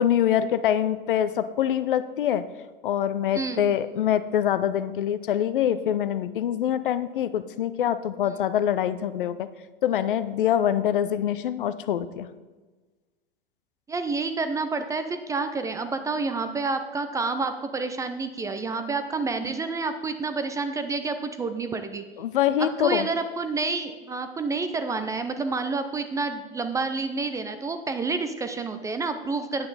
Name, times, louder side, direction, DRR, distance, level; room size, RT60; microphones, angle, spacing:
voice 1, 0.0-2.4 2.8-9.5 9.8-12.3 22.2-23.1, left 10 dB, 60° left, 13 dB, 0.6 m, -24 dB
voice 2, 3.3-3.6 8.2-8.3 13.9-22.0 22.6-29.7, right 3 dB, 10° right, 8 dB, 0.4 m, -29 dB
9.4 x 8.5 x 4.1 m, 1.3 s
figure-of-eight pair, 90°, 29 cm